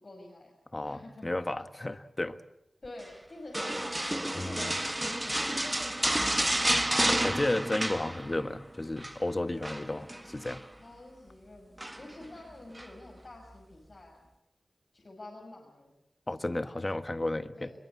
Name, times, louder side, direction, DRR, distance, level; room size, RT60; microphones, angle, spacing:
voice 1, 0.0-0.5 0.8-1.3 2.8-6.5 9.9-10.3 10.7-14.3 14.9-15.9 17.5-17.7, left 2 dB, 55° left, 6.0 m, -48 dB
voice 2, 0.7-2.4 4.3-4.7 7.2-10.6 16.3-17.7, left 2 dB, 30° left, 1.4 m, -33 dB
sound 1, 3.5-8.6 8.8-9.2 9.6-10.7 11.8-12.2 12.8-12.9, right 1 dB, 15° right, 1.0 m, -30 dB
22.5 x 22.0 x 8.5 m
cardioid pair, 50°, 0 cm